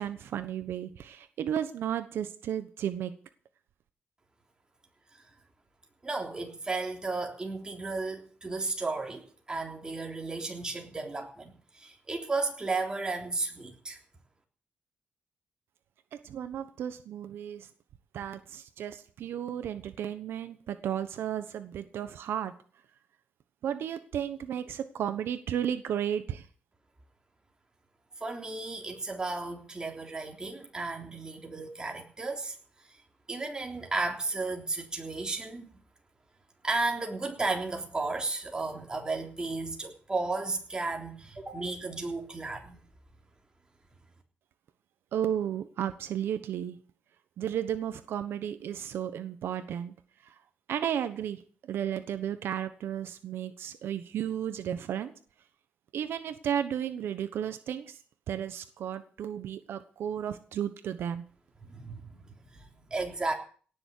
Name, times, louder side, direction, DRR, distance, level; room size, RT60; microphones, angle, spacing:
voice 1, 0.0-3.1 16.1-17.7 18.1-22.5 23.6-26.5 45.1-46.8 47.4-49.9 50.7-51.4 51.7-55.1 55.9-58.0 58.3-61.2, right 9 dB, 85° right, 10 dB, 1.1 m, -33 dB
voice 2, 6.0-14.0 28.2-32.9 33.3-35.7 36.6-42.8 61.6-63.3, right 3 dB, 20° right, 2 dB, 3.4 m, -34 dB
18.0 x 7.0 x 8.4 m, 0.43 s
cardioid pair, 125°, 4 cm